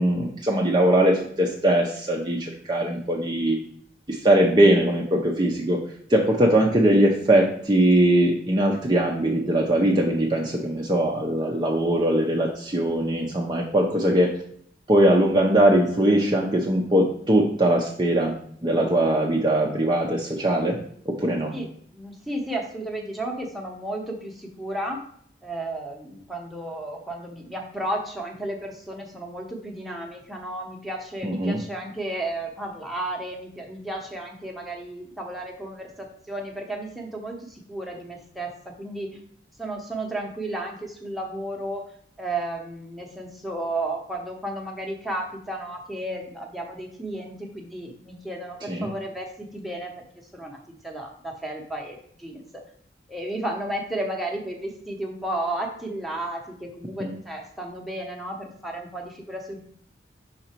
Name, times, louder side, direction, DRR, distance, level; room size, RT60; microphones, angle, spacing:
voice 1, 0.0-3.6 4.1-5.8 6.1-14.3 14.9-18.3 18.6-20.8 21.1-21.5 31.2-31.6 48.7-48.9 57.0-57.1, right 1 dB, 25° right, -1 dB, 0.6 m, -21 dB
voice 2, 21.5-25.0 25.4-39.2 39.6-41.8 42.2-50.0 50.3-50.6 50.8-52.4 53.1-59.6, right 1 dB, ahead, -1 dB, 0.9 m, -33 dB
5.8 x 3.9 x 4.4 m, 0.63 s
head